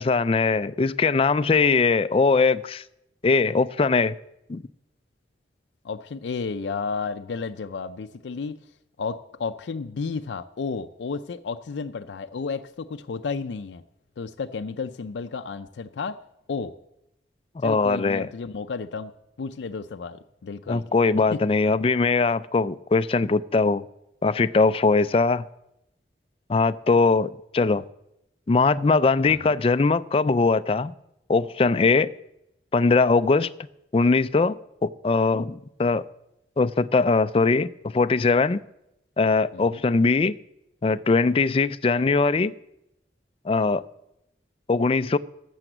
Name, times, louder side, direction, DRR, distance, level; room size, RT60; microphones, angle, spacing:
voice 1, 0.0-2.8 3.2-4.1 4.5-4.6 17.6-18.3 20.7-23.8 24.2-25.5 26.5-27.8 28.5-30.9 31.3-32.1 32.7-33.5 33.9-34.5 34.8-36.0 36.6-38.6 39.2-40.3 40.8-42.5 43.5-43.8 44.7-45.2, left 4 dB, 30° left, 0.4 m, -21 dB
voice 2, 5.8-8.6 9.0-13.8 14.2-16.2 16.5-16.7 17.6-19.1 19.4-20.8 21.3-21.4 29.3-29.5 39.5-39.8, left 4 dB, 90° left, 0.4 m, -32 dB
12.0 x 7.1 x 7.8 m
head